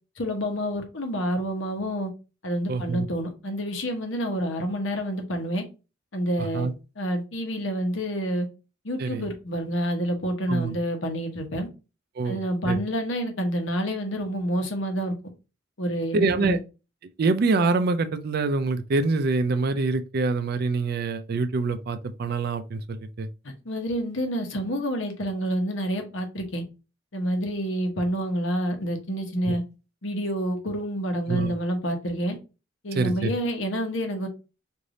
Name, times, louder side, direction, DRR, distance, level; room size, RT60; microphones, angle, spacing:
voice 1, 0.2-2.1 2.4-5.6 6.1-6.7 7.0-8.5 8.8-11.7 12.2-15.1 15.8-16.6 23.4-26.6 27.1-29.6 30.0-32.4 32.8-34.3, equal, 70° left, 1.0 m, -28 dB
voice 2, 2.7-3.1 6.5-6.7 9.0-9.3 10.5-10.8 12.2-12.4 12.7-12.8 16.1-16.6 17.2-23.3 29.5-29.6 31.3-31.5 32.9-33.3, right 3 dB, 50° right, 0.4 m, -25 dB
3.3 x 2.6 x 3.8 m
head